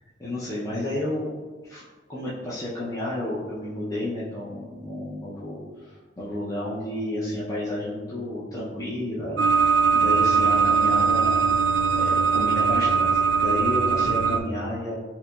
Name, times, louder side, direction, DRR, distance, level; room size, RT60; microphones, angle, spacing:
voice 1, 0.2-1.3 1.6-1.8 2.1-11.4 11.9-14.9, left 1 dB, 20° left, -9 dB, 0.5 m, -31 dB
sound 1, 9.4-14.4, right 5 dB, 75° right, 0.3 m, -21 dB
4.0 x 2.8 x 2.2 m, 1.4 s
head